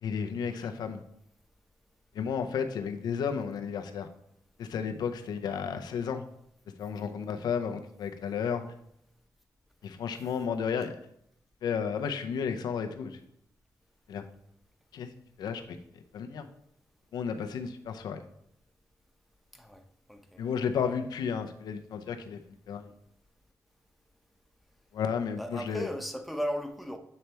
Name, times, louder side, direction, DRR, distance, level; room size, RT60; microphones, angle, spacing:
voice 1, 0.0-1.0 2.1-4.1 4.6-6.2 6.8-8.6 9.8-10.9 11.6-13.2 14.1-14.2 14.9-15.1 15.4-15.8 16.1-16.5 17.1-18.2 20.4-22.4 22.7-22.9 24.9-25.9, left 6 dB, 90° left, 7 dB, 0.6 m, -32 dB
voice 2, 20.1-20.4 25.4-27.0, equal, ahead, 6 dB, 0.8 m, -36 dB
8.0 x 3.3 x 4.4 m, 0.75 s
cardioid pair, 70°, 7 cm